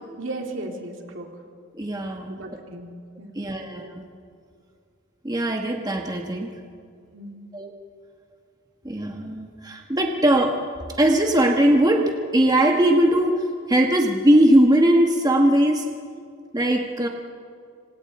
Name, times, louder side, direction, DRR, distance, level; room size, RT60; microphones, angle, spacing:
voice 1, 0.2-1.3 2.2-2.9 3.2-3.4 7.1-7.4, right 2 dB, 65° right, 2 dB, 2.8 m, -35 dB
voice 2, 1.8-2.6 3.3-4.1 5.2-6.5 7.5-7.7 8.8-10.6 11.0-15.9 16.5-17.1, right 1 dB, 20° right, 2 dB, 1.3 m, -20 dB
26.5 x 26.0 x 4.3 m, 2.2 s
head